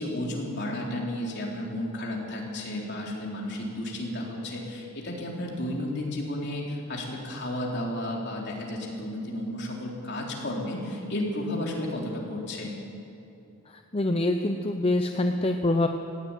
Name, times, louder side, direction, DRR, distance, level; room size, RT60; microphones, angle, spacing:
voice 1, 0.0-12.7, left 1 dB, 50° left, -2 dB, 3.8 m, -32 dB
voice 2, 13.9-15.9, left 2 dB, 25° left, 5 dB, 0.7 m, -25 dB
18.0 x 16.0 x 9.2 m, 2.9 s
head